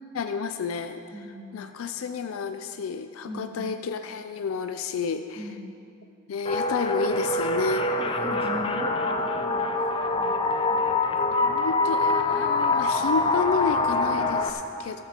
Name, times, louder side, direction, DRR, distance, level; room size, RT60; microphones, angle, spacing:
voice 1, 0.1-1.0 1.5-5.5 6.3-7.9 11.4-15.0, left 5 dB, 85° left, 8 dB, 0.4 m, -30 dB
voice 2, 1.1-1.8 3.3-3.7 5.4-5.8 8.0-11.0, equal, 30° right, 1 dB, 0.8 m, -40 dB
sound 1, 6.5-14.5, left 2 dB, 25° left, 0.5 m, -25 dB
14.0 x 13.0 x 2.9 m, 2.6 s
head